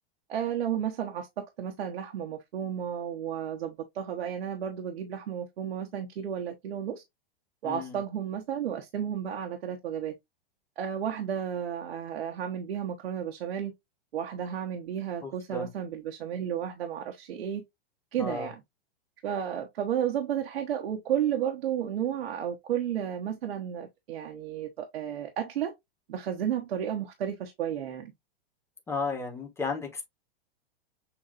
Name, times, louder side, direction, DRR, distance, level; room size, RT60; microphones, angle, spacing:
voice 1, 0.3-7.0 7.6-10.1 10.8-13.7 14.1-17.6 18.1-18.6 19.2-25.7 26.1-28.1, right 9 dB, 80° right, 1.1 m, -32 dB
voice 2, 7.6-8.0 15.2-15.7 18.2-18.5 28.9-30.0, left 4 dB, 10° left, 1.2 m, -34 dB
7.1 x 2.7 x 2.5 m
hypercardioid pair, 130°, 30 cm